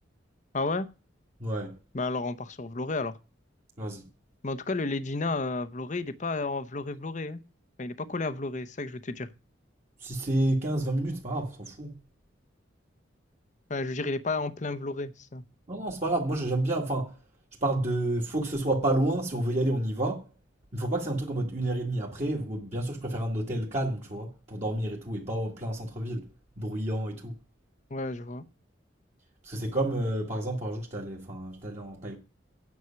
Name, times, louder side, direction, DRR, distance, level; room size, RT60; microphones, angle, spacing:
voice 1, 0.5-0.9 1.9-3.1 4.4-7.4 7.8-9.3 13.7-15.4 27.9-28.4, left 3 dB, 40° left, 0.8 m, -32 dB
voice 2, 1.4-1.8 3.8-4.1 10.0-12.0 15.7-17.2 17.6-20.3 20.7-26.3 26.6-27.3 29.4-32.2, right 1 dB, 35° right, 1.8 m, -30 dB
9.5 x 6.3 x 5.7 m
head